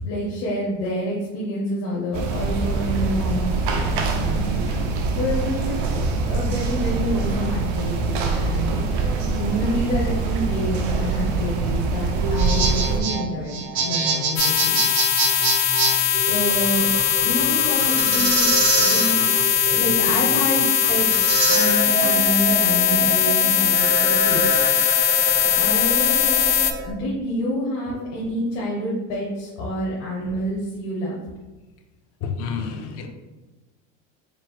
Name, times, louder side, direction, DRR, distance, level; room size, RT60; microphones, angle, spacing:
voice 1, 0.0-4.5 5.1-5.9 6.2-8.8 9.3-14.8 16.2-16.9 17.2-19.2 19.7-24.4 25.5-26.6 26.8-31.2, equal, 55° left, -5 dB, 0.9 m, -28 dB
sound 1, 2.1-13.0, right 3 dB, 80° right, 0.8 m, -24 dB
voice 2, 5.4-5.7 6.0-6.1 25.3-25.4 27.9-28.0 32.2-33.1, left 6 dB, 40° left, 5 dB, 0.4 m, -31 dB
sound 2, 12.2-26.9, right 4 dB, 40° right, 0.6 m, -26 dB
sound 3, 14.4-26.7, left 11 dB, 85° left, 0.6 m, -20 dB
4.3 x 2.0 x 4.2 m, 1.2 s
cardioid pair, 160°, 37 cm